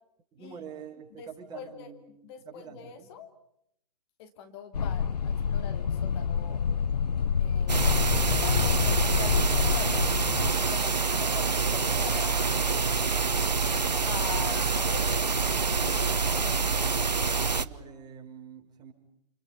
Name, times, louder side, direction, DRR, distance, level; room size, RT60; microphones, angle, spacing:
voice 1, 0.3-2.0 2.4-3.1 7.1-7.9 17.5-18.9, right 7 dB, 20° right, 1 dB, 6.4 m, -47 dB
voice 2, 1.5-1.9 2.2-3.3 4.2-6.6 7.4-12.6 14.1-15.2 15.8-16.6, left 7 dB, 40° left, 7 dB, 2.8 m, -42 dB
sound 1, 4.7-10.5, left 7 dB, 70° left, 0.9 m, -27 dB
sound 2, 7.7-17.7, right 4 dB, 80° right, 1.2 m, -26 dB
29.5 x 29.5 x 5.6 m, 0.75 s
figure-of-eight pair, 120°, 21 cm